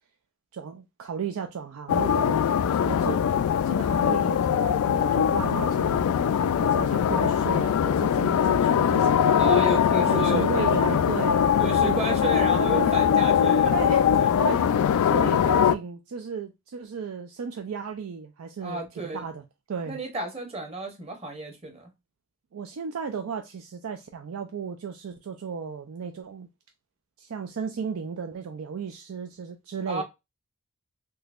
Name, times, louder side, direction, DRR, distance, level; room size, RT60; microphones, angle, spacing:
voice 1, 0.5-2.4 2.7-3.2 3.6-6.1 6.6-9.3 10.0-11.4 11.8-12.2 12.8-13.0 13.7-18.8 19.1-20.0 22.5-26.5 27.2-30.0, right 6 dB, 80° right, 0.4 m, -34 dB
sound 1, 1.9-15.7, left 8 dB, 85° left, 0.3 m, -22 dB
voice 2, 9.4-11.0 11.6-13.7 14.2-14.5 18.6-19.2 19.9-21.9 29.9-30.0, right 2 dB, 30° right, 0.9 m, -33 dB
3.9 x 2.7 x 2.4 m
head